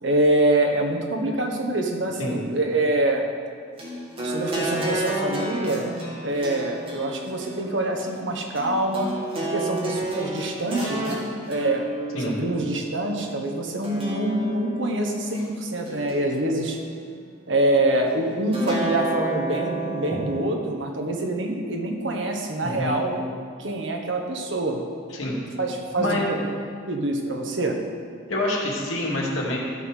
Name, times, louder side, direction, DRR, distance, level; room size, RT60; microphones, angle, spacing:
voice 1, 0.0-3.2 4.2-5.9 6.2-9.1 9.5-11.9 12.2-16.8 17.5-23.2 23.6-24.8 25.6-26.2 26.9-27.8, right 1 dB, 65° right, 2 dB, 1.3 m, -25 dB
sound 1, 3.8-13.2 13.8-15.4 15.9-17.0 18.5-20.5, right 1 dB, 30° right, 2.2 m, -31 dB
voice 2, 22.6-23.0 25.1-25.4 26.0-26.3 28.3-29.6, left 1 dB, 80° left, -4 dB, 2.6 m, -26 dB
13.5 x 5.8 x 6.4 m, 2.1 s
head